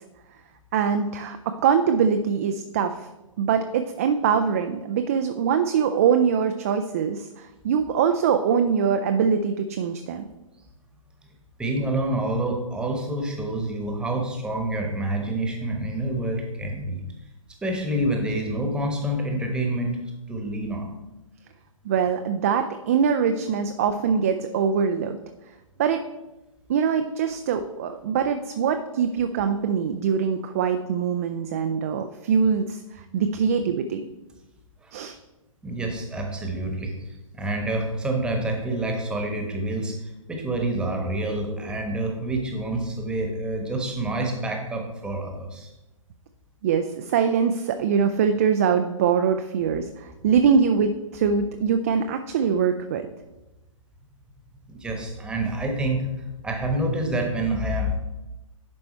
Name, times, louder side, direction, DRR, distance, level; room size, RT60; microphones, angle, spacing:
voice 1, 0.7-3.1 3.4-10.3 21.8-25.2 25.8-26.0 26.7-34.1 34.9-35.2 46.6-53.1, right 6 dB, 25° right, 7 dB, 0.3 m, -23 dB
voice 2, 11.6-17.0 17.6-20.0 20.3-20.9 34.8-34.9 35.6-37.1 37.3-45.7 54.7-56.1 56.4-57.9, right 1 dB, 5° right, 2 dB, 1.1 m, -27 dB
10.5 x 4.2 x 4.3 m, 0.99 s
figure-of-eight pair, 130°, 18 cm